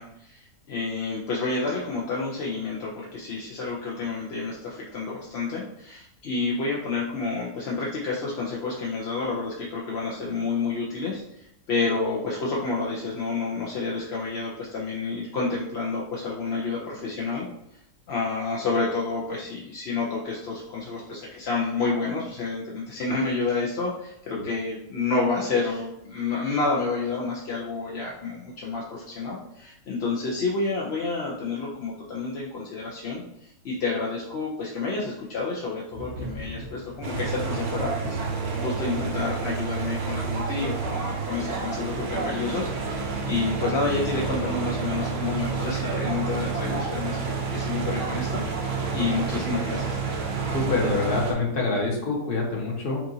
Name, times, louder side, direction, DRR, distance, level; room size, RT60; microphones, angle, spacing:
voice 1, 0.0-17.5 18.1-38.2 38.5-50.0, left 3 dB, 60° left, -4 dB, 0.7 m, -29 dB
Thunder / Rain, 35.9-45.7, equal, 85° right, 1.5 m, -43 dB
sound 1, 37.0-51.3, right 5 dB, 65° right, 1.1 m, -29 dB
voice 2, 50.5-53.0, left 3 dB, 40° left, -2 dB, 0.9 m, -26 dB
5.6 x 2.5 x 2.7 m, 0.79 s
omnidirectional pair, 1.8 m